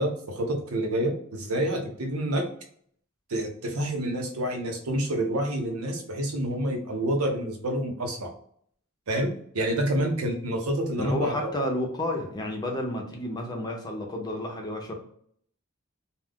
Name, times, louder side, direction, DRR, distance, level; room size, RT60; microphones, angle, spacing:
voice 1, 0.0-2.4 3.3-8.3 9.1-11.3, right 1 dB, 80° right, 3 dB, 0.7 m, -28 dB
voice 2, 11.0-14.9, left 1 dB, 20° left, 1 dB, 0.6 m, -30 dB
2.4 x 2.3 x 3.5 m, 0.63 s
head